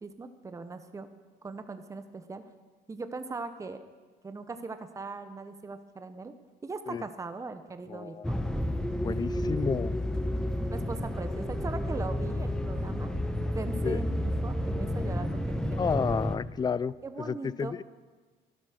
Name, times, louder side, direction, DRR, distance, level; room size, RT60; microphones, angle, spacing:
voice 1, 0.0-1.1 1.4-2.4 2.9-3.8 4.2-6.3 6.6-8.3 9.0-9.6 10.7-13.1 13.5-15.8 17.0-17.7, right 3 dB, 20° right, 9 dB, 0.9 m, -40 dB
voice 2, 7.9-8.3 9.0-10.0 13.8-14.0 15.8-17.8, left 6 dB, 25° left, 19 dB, 0.4 m, -31 dB
sound 1, 8.2-16.4, left 1 dB, 5° left, 1.0 m, -31 dB
12.5 x 12.5 x 6.6 m, 1.4 s
cardioid pair, 110°, 17 cm